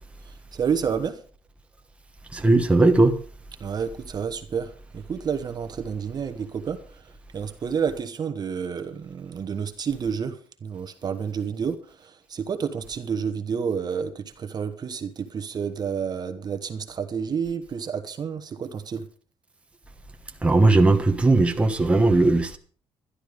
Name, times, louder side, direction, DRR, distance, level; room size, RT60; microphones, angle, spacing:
voice 1, 0.3-1.2 3.6-19.0, right 6 dB, 40° right, 1.2 m, -30 dB
voice 2, 2.3-3.1 20.4-22.6, right 2 dB, 10° right, 1.2 m, -18 dB
12.5 x 11.5 x 5.0 m
cardioid pair, 135°, 11 cm